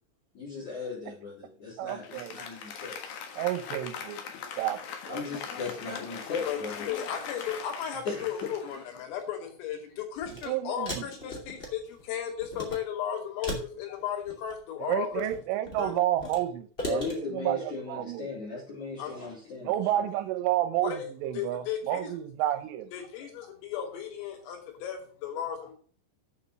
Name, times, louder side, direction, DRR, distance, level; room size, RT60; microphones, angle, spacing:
voice 1, 0.3-3.1 5.1-6.9 8.0-8.3 16.8-20.1, left 4 dB, 40° left, 4.9 m, -37 dB
voice 2, 1.8-2.4 3.4-4.2 4.6-5.2 5.9-6.0 10.5-11.1 14.8-18.3 19.6-22.9, right 13 dB, 80° right, 3.3 m, -30 dB
Applause, 1.9-9.5, left 7 dB, 65° left, 2.6 m, -41 dB
voice 3, 6.9-15.3 15.8-16.0 19.0-19.1 20.8-21.1 21.4-22.1 22.9-25.7, left 9 dB, 80° left, 5.2 m, -35 dB
sound 1, 10.2-10.5 10.8-12.0 12.4-12.8 13.4-14.6 15.1-16.4 16.8-17.1, equal, 20° left, 1.4 m, -38 dB
9.0 x 7.2 x 6.0 m
omnidirectional pair, 5.9 m